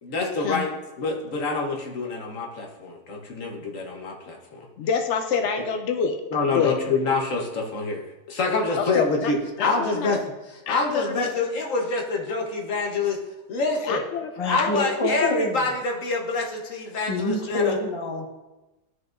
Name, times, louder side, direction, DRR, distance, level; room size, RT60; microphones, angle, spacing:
voice 1, 0.0-0.7 1.0-4.6 6.3-8.0 8.3-10.2 10.5-13.2 13.5-14.0 14.5-17.7, left 3 dB, 50° left, 0 dB, 1.3 m, -26 dB
voice 2, 4.8-6.2 6.5-6.8 8.8-9.3 9.6-10.2 10.7-11.4 13.8-14.3 14.6-14.9 15.2-15.4, left 6 dB, 85° left, 5 dB, 0.6 m, -26 dB
voice 3, 14.4-15.6 17.1-18.3, left 1 dB, 30° left, 1 dB, 0.6 m, -26 dB
13.0 x 4.7 x 2.5 m, 1.1 s
omnidirectional pair, 1.9 m